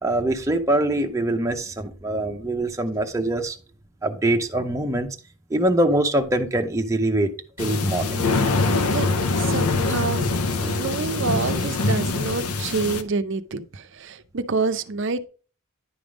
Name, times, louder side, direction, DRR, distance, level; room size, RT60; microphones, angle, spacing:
voice 1, 0.0-3.6 4.0-5.1 5.5-7.3 7.6-8.3, right 1 dB, 15° right, 0.6 m, -23 dB
sound 1, 7.6-13.0, left 3 dB, 85° left, 0.7 m, -23 dB
voice 2, 9.4-10.3 10.6-15.3, right 4 dB, 55° right, 0.5 m, -27 dB
10.0 x 3.6 x 4.9 m
head